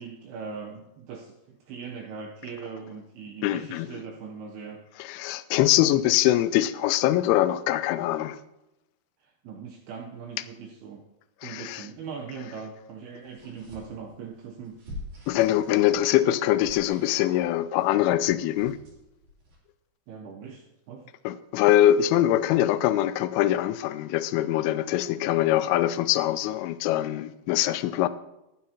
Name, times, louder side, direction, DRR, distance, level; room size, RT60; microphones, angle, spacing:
voice 1, 0.0-4.8 9.2-11.0 11.4-14.8 20.1-21.1, right 5 dB, 80° right, 2.3 m, -40 dB
voice 2, 3.4-3.9 5.0-8.4 11.4-11.8 15.3-18.8 21.2-28.1, left 13 dB, 90° left, 3.1 m, -23 dB
sound 1, 13.2-19.6, left 2 dB, 45° right, 4.1 m, -47 dB
20.5 x 9.3 x 2.9 m
omnidirectional pair, 5.5 m